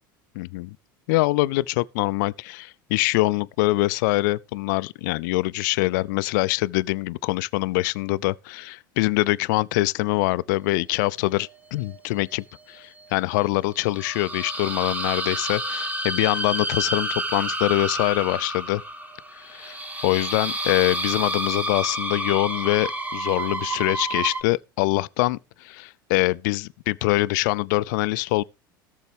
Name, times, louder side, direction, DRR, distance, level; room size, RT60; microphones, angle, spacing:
voice 1, 0.4-0.8 1.1-18.8 19.3-28.4, left 20 dB, 60° left, 0.5 m, -24 dB
sound 1, 11.4-12.4 13.2-24.4, right 1 dB, 15° right, 1.9 m, -30 dB
17.5 x 7.1 x 3.5 m
figure-of-eight pair, 75°, 11 cm